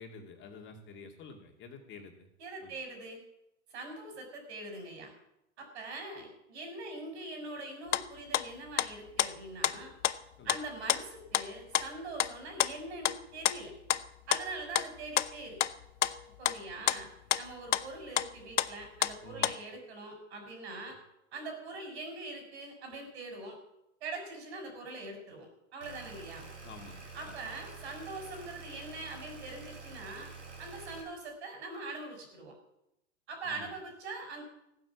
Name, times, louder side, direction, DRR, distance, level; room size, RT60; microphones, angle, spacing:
voice 1, 0.0-2.3 2.6-2.8 10.4-10.6 19.2-19.5 26.6-27.4 33.4-33.7, left 3 dB, 30° left, 3 dB, 2.5 m, -49 dB
voice 2, 2.4-3.2 3.7-5.1 5.6-9.9 10.4-13.7 14.3-15.6 16.4-17.1 17.3-21.0 21.3-23.6 24.0-26.5 27.1-30.3 30.6-32.5 33.3-34.4, right 2 dB, 65° right, 4 dB, 6.2 m, -43 dB
sound 1, 7.9-8.0 8.3-8.9 9.2-9.3 9.6-9.8 10.0-10.2 10.5-10.6 10.9-11.0 11.3-11.5 11.7-12.3 12.6-12.7 13.0-13.2 13.5-13.6 13.9-14.0 14.3-17.0 17.3-17.4 17.7-17.8 18.2-18.3 18.6-19.1 19.4-19.6, left 11 dB, 85° left, 0.7 m, -29 dB
sound 2, 25.8-31.0, right 4 dB, 90° right, 5.5 m, -48 dB
15.5 x 9.6 x 7.2 m, 0.84 s
hypercardioid pair, 110°, 35 cm